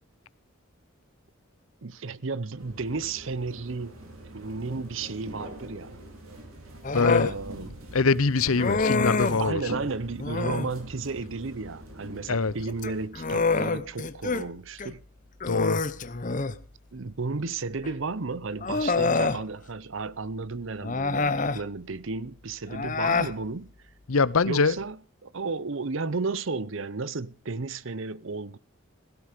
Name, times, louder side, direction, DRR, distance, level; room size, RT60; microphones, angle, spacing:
voice 1, 1.8-4.0 4.2-6.0 6.9-7.8 9.4-15.0 16.9-23.7 24.5-28.6, right 4 dB, 65° right, 0.8 m, -33 dB
sound 1, 2.6-13.1, right 1 dB, 85° right, 4.6 m, -43 dB
Human voice, 6.8-7.4 8.6-9.5 10.2-10.7 12.7-14.4 14.8-14.9 15.4-16.6 17.8-17.9 18.6-19.4 20.8-21.6 22.7-23.3, left 4 dB, 35° left, 0.8 m, -26 dB
voice 2, 6.9-7.3 7.9-9.6 12.3-12.5 15.5-15.8 24.1-24.8, left 4 dB, 80° left, 0.8 m, -23 dB
16.5 x 15.5 x 5.0 m
head